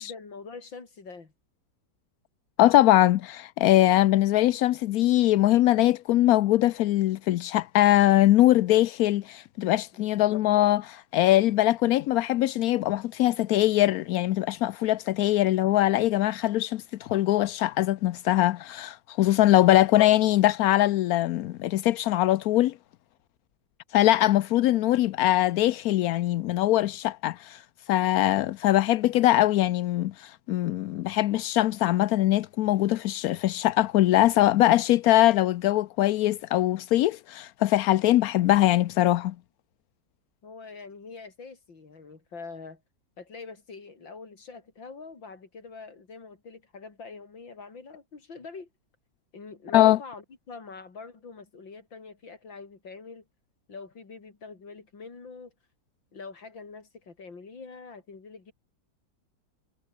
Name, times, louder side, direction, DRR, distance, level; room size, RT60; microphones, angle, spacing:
voice 1, 0.0-1.3 9.9-10.1 40.4-42.8 43.2-48.7 49.3-53.2 53.7-55.5 56.1-58.5, left 4 dB, 85° left, 4.3 m, -44 dB
voice 2, 2.6-22.7 23.9-27.6 27.9-39.3 49.7-50.0, left 14 dB, 70° left, 0.9 m, -22 dB
omnidirectional pair, 2.0 m